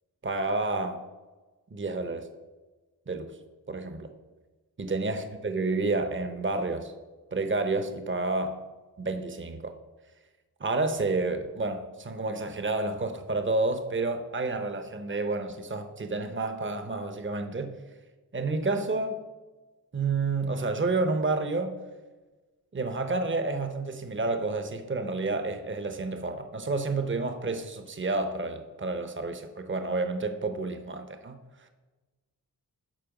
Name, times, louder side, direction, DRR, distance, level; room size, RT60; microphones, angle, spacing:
voice 1, 0.2-1.0 1.7-2.3 3.1-3.3 3.7-4.1 4.8-6.9 7.3-8.6 9.0-9.7 10.6-17.8 18.3-19.2 19.9-21.8 22.7-31.4, right 3 dB, 30° right, 0.8 m, -30 dB
9.1 x 4.5 x 5.9 m
cardioid pair, 45°, 38 cm